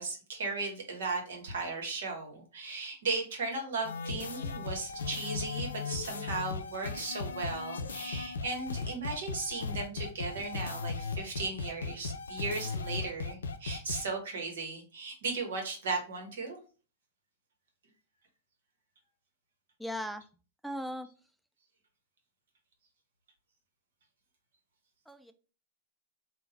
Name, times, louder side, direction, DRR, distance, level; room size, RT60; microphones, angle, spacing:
voice 1, 0.0-16.6, right 3 dB, 65° right, 2 dB, 1.4 m, -36 dB
sound 1, 3.8-14.0, left 4 dB, 75° left, 0.5 m, -37 dB
voice 2, 19.8-20.2 20.6-21.1 25.1-25.3, equal, ahead, 8 dB, 0.4 m, -37 dB
3.8 x 2.5 x 4.1 m, 0.36 s
figure-of-eight pair, 100°, 0 cm